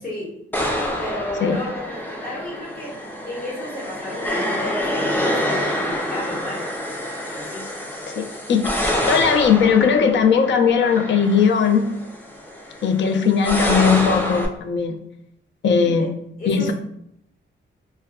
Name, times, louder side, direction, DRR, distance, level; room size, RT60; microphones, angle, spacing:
voice 1, 0.0-0.3 1.0-3.0 3.2-6.7 7.3-7.6 16.0-16.1 16.4-16.7, left 1 dB, 50° left, -4 dB, 1.1 m, -32 dB
sound 1, 0.5-14.5, equal, 10° left, 0.4 m, -27 dB
voice 2, 8.1-8.6 9.1-11.9 12.8-15.0 15.6-16.1 16.5-16.7, left 6 dB, 70° left, 5 dB, 0.4 m, -18 dB
2.2 x 2.2 x 3.5 m, 0.73 s
wide cardioid pair, 120°, 20 cm